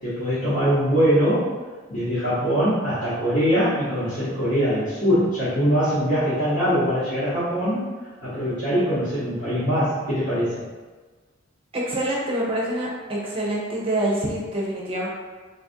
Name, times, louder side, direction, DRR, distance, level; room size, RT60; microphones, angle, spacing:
voice 1, 0.0-1.5 1.9-7.9 8.2-10.5, equal, 65° left, -13 dB, 1.1 m, -22 dB
voice 2, 11.7-15.1, right 1 dB, 25° right, -4 dB, 0.5 m, -26 dB
3.9 x 2.4 x 2.6 m, 1.4 s
head